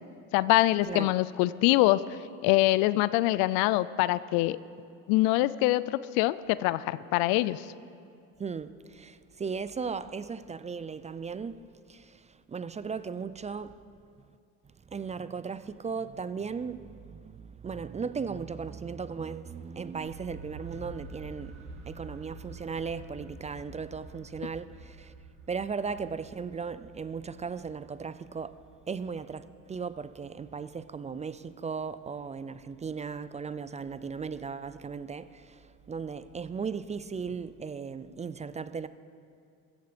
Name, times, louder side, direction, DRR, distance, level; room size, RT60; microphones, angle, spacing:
voice 1, 0.3-2.0 2.4-4.6 5.1-7.6, left 17 dB, 75° left, 0.6 m, -24 dB
voice 2, 8.4-11.6 11.9-12.2 12.5-13.8 14.9-21.6 21.9-25.1 25.5-28.6 28.9-35.6 35.9-38.9, right 5 dB, 20° right, 0.4 m, -37 dB
sound 1, 19.9-31.8, right 2 dB, 60° right, 2.3 m, -49 dB
15.5 x 14.0 x 5.1 m
supercardioid pair, 90°, 35 cm